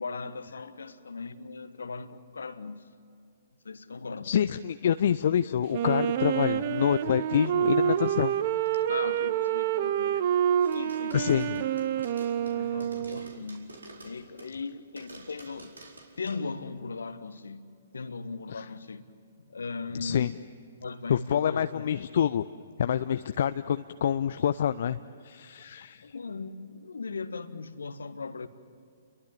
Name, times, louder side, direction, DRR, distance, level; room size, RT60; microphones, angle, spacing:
voice 1, 0.0-2.8 3.6-4.3 8.9-10.2 10.7-11.6 12.6-13.7 14.0-15.7 16.2-17.7 17.9-19.0 19.5-20.3 20.8-21.8 26.0-28.5, left 4 dB, 65° left, 1.3 m, -38 dB
voice 2, 4.2-8.3 11.1-11.5 12.5-12.8 18.6-18.7 20.0-20.3 21.1-22.4 22.8-26.1, left 9 dB, 50° left, 0.5 m, -27 dB
Wind instrument woodwind instrument, 5.7-13.4, right 10 dB, 40° right, 0.9 m, -28 dB
sound 1, 10.6-14.7 15.0-16.4, right 2 dB, 75° right, 4.4 m, -48 dB
30.0 x 22.5 x 7.4 m
figure-of-eight pair, 120°, 0 cm